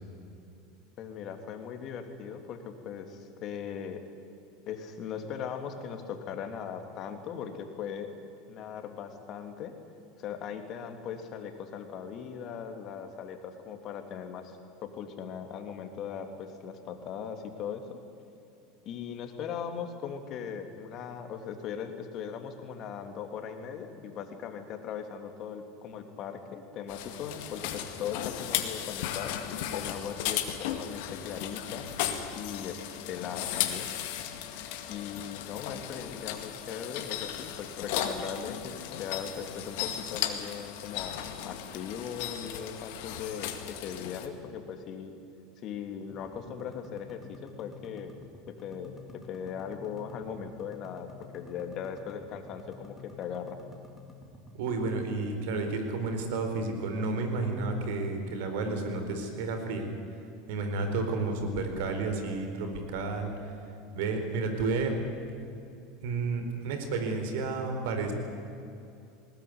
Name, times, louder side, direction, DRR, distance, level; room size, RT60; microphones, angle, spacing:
voice 1, 1.0-4.0 4.7-8.1 8.5-9.7 10.2-14.6 14.8-18.0 18.8-29.4 29.7-31.9 32.3-33.9 34.9-45.1 45.6-48.1 48.5-53.6, left 7 dB, 50° left, 6 dB, 3.0 m, -39 dB
sound 1, 26.9-44.3, left 10 dB, 65° left, 2.1 m, -36 dB
sound 2, 46.1-54.6, left 3 dB, 10° left, 3.4 m, -50 dB
voice 2, 54.6-59.9 60.5-63.3 63.9-64.9 66.0-68.1, right 3 dB, 70° right, 6 dB, 4.3 m, -31 dB
20.0 x 19.5 x 9.7 m, 2.7 s
hypercardioid pair, 90°, 0 cm